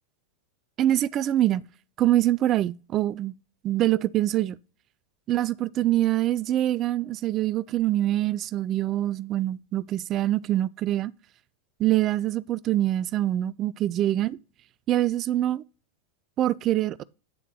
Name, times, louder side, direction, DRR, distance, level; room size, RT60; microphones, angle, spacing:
voice 1, 0.8-1.6 2.0-3.3 3.6-4.6 5.3-11.1 11.8-14.4 14.9-15.6 16.4-17.0, right 13 dB, 30° right, 0.3 m, -24 dB
9.3 x 3.6 x 4.1 m
figure-of-eight pair, 90°, 0 cm